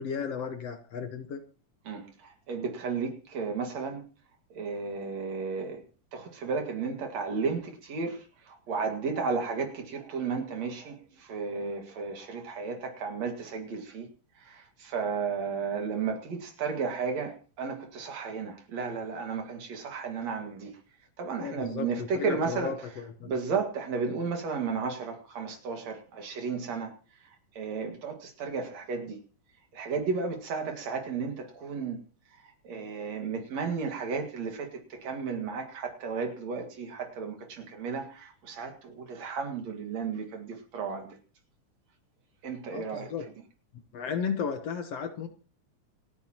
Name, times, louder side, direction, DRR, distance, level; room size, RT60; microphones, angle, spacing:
voice 1, 0.0-1.4 21.4-23.3 42.7-43.3 43.9-45.3, left 6 dB, 60° left, 2.0 m, -34 dB
voice 2, 1.9-4.0 4.5-5.8 6.1-14.1 14.5-20.7 21.2-22.7 23.3-26.9 27.6-29.2 29.7-32.0 32.6-41.1 42.4-43.1, right 5 dB, 60° right, 3.1 m, -33 dB
28.0 x 9.4 x 3.0 m
omnidirectional pair, 3.6 m